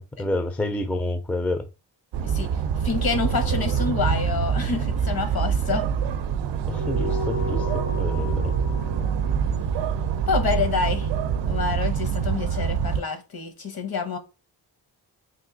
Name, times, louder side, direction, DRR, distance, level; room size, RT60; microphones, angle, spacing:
voice 1, 0.0-1.7 6.7-8.5, left 1 dB, 5° left, 0.4 m, -28 dB
sound 1, 2.1-13.0, right 7 dB, 80° right, 0.5 m, -25 dB
voice 2, 2.2-5.9 10.3-11.1 11.4-14.2, left 5 dB, 55° left, 1.0 m, -27 dB
sound 2, 6.7-11.5, left 2 dB, 75° left, 1.9 m, -36 dB
3.1 x 2.6 x 3.8 m
cardioid pair, 80°, 42 cm